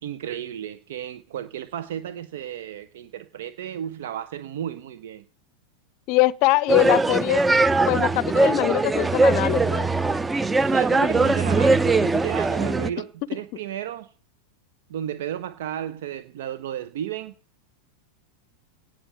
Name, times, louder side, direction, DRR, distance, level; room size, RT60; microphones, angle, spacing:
voice 1, 0.0-5.2 10.6-14.1 14.9-17.3, right 10 dB, 55° right, 0.9 m, -33 dB
voice 2, 6.1-7.4 7.9-9.9, left 20 dB, 45° left, 0.6 m, -22 dB
sound 1, 6.7-12.9, right 3 dB, 10° right, 0.7 m, -21 dB
18.0 x 6.5 x 9.3 m
figure-of-eight pair, 90°, 0 cm